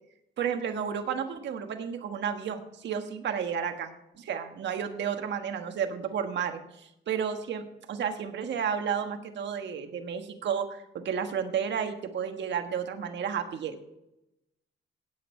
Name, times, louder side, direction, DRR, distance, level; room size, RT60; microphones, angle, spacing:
voice 1, 0.4-3.9 4.2-14.0, right 7 dB, 65° right, 6 dB, 1.5 m, -32 dB
17.0 x 8.2 x 4.5 m, 0.86 s
cardioid pair, 90°, 20 cm